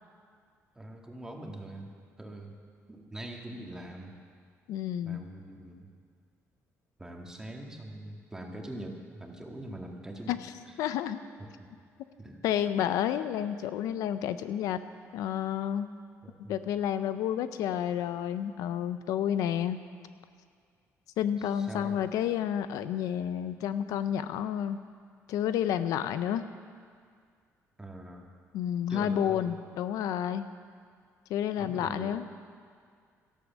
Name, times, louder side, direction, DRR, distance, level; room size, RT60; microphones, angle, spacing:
voice 1, 0.8-1.9 2.2-2.5 2.9-4.1 5.0-5.9 7.0-10.4 11.4-11.7 12.2-12.4 16.2-16.5 21.6-22.0 27.8-28.3 28.9-29.5 31.6-32.2, right 1 dB, 10° right, 1 dB, 2.0 m, -43 dB
voice 2, 4.7-5.3 10.3-10.5 10.8-11.2 12.4-14.8 15.1-15.9 16.5-19.8 21.2-24.8 25.3-26.4 28.5-30.5 31.3-32.3, left 10 dB, 85° left, 12 dB, 0.6 m, -30 dB
13.0 x 11.5 x 7.3 m, 2.1 s
cardioid pair, 105°, 6 cm